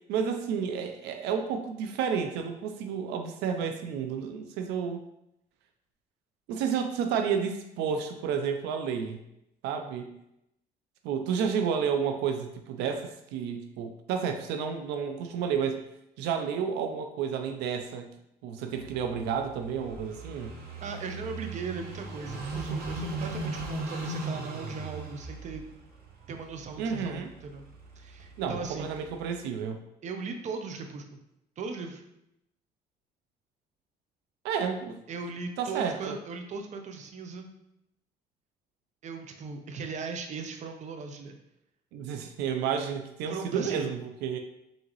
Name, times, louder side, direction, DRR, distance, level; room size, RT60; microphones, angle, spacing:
voice 1, 0.1-5.0 6.5-9.2 9.6-10.1 11.0-15.8 16.2-18.1 18.4-20.5 26.8-27.3 28.4-29.8 34.4-35.0 35.6-36.2 41.9-44.4, right 7 dB, 90° right, 6 dB, 0.4 m, -31 dB
Car passing by / Idling, 18.7-29.3, right 2 dB, 65° right, 1.1 m, -39 dB
voice 2, 20.8-25.7 26.3-27.6 28.0-28.9 30.0-31.2 31.6-32.0 35.1-37.5 39.0-41.4 43.3-43.9, right 4 dB, 45° right, 5 dB, 0.6 m, -38 dB
3.9 x 3.7 x 3.0 m, 0.82 s
cardioid pair, 110°, 17 cm